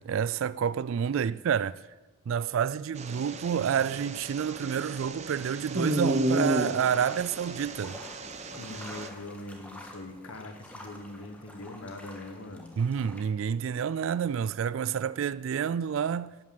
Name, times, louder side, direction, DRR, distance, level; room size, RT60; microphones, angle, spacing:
voice 1, 0.0-1.7 2.3-8.0 12.8-16.4, right 7 dB, 70° right, 0.3 m, -29 dB
sound 1, 3.0-9.1, right 1 dB, 30° right, 0.9 m, -33 dB
sound 2, 6.3-13.2, left 1 dB, 5° left, 1.5 m, -49 dB
voice 2, 8.5-12.7, left 2 dB, 75° left, 1.4 m, -42 dB
11.5 x 9.1 x 7.7 m
head